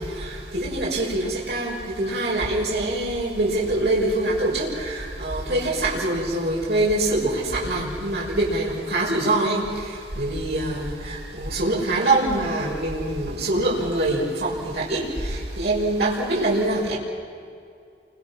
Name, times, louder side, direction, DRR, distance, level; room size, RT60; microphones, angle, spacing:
voice 1, 0.2-9.7 10.2-17.0, right 2 dB, 65° right, -4 dB, 5.9 m, -24 dB
29.5 x 25.5 x 6.1 m, 2.4 s
head